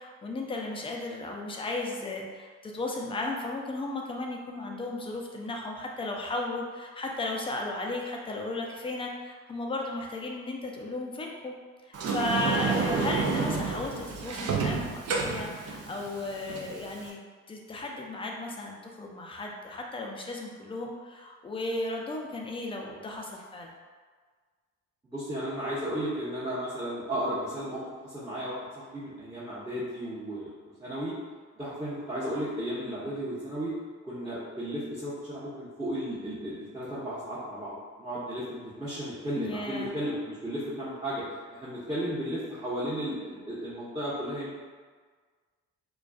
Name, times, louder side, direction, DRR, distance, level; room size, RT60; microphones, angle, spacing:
voice 1, 0.0-11.5 11.9-17.2 17.5-23.7 39.4-39.9, left 2 dB, 15° left, 0 dB, 0.4 m, -35 dB
Sliding door, 11.9-17.1, right 5 dB, 40° right, 0.5 m, -30 dB
voice 2, 25.1-30.5 30.8-31.2 31.6-33.7 34.0-37.7 38.0-41.2 41.5-44.6, equal, 10° right, -11 dB, 0.8 m, -34 dB
2.4 x 2.3 x 2.2 m, 1.5 s
hypercardioid pair, 50°, 37 cm